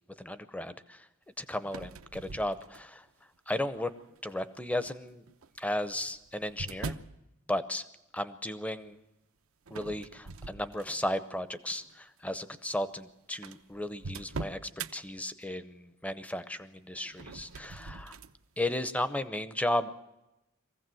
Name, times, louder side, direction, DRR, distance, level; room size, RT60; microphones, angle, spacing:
voice 1, 0.2-1.0 1.4-3.0 3.5-3.9 4.2-5.2 5.6-7.0 7.5-7.8 8.1-9.0 9.7-14.6 14.9-18.2 18.6-20.0, left 1 dB, 5° left, 13 dB, 0.8 m, -34 dB
sound 1, 1.6-3.1 3.7-4.2 5.3-7.2 9.7-11.2 11.7-11.9 12.7-12.8 13.0-13.1 13.4-14.9 17.0-18.3, right 4 dB, 80° right, 0.8 m, -42 dB
23.0 x 15.5 x 7.7 m, 0.96 s
head